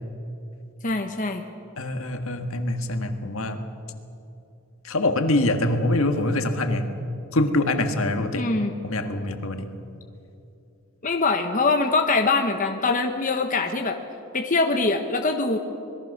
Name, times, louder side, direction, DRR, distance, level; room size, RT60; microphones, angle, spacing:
voice 1, 0.8-1.4 8.4-8.7 11.0-14.0 14.3-15.6, left 3 dB, 35° left, 4 dB, 1.2 m, -23 dB
voice 2, 1.8-3.6 4.8-6.9 7.3-8.5 8.8-9.7, left 2 dB, 65° left, 6 dB, 1.8 m, -24 dB
26.0 x 21.0 x 6.6 m, 2.7 s
head